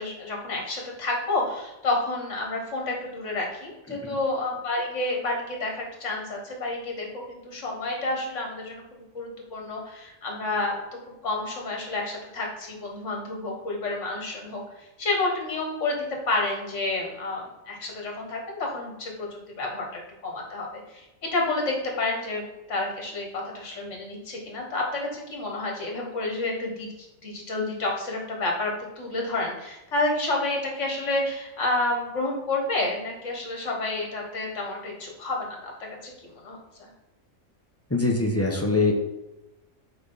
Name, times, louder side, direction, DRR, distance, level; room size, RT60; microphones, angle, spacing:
voice 1, 0.0-10.8 11.2-36.9, left 2 dB, 60° left, 0 dB, 1.9 m, -30 dB
voice 2, 37.9-38.9, left 3 dB, 10° left, 0 dB, 0.9 m, -23 dB
7.8 x 3.3 x 5.6 m, 0.98 s
omnidirectional pair, 1.4 m